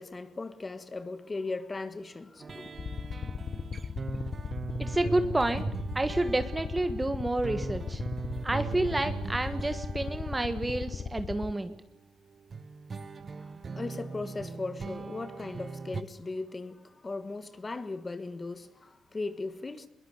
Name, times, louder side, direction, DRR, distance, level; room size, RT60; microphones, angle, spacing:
voice 1, 0.0-2.7 13.4-13.5 13.7-19.9, left 3 dB, 25° left, 1.6 m, -38 dB
sound 1, 2.4-11.8 12.5-16.0, right 5 dB, 40° right, 1.0 m, -40 dB
sound 2, 2.7-11.5, left 6 dB, 45° left, 1.0 m, -37 dB
voice 2, 4.8-5.6 5.9-8.0 8.4-11.7, right 2 dB, 15° right, 1.3 m, -29 dB
21.5 x 19.0 x 8.2 m
cardioid pair, 90°, 0 cm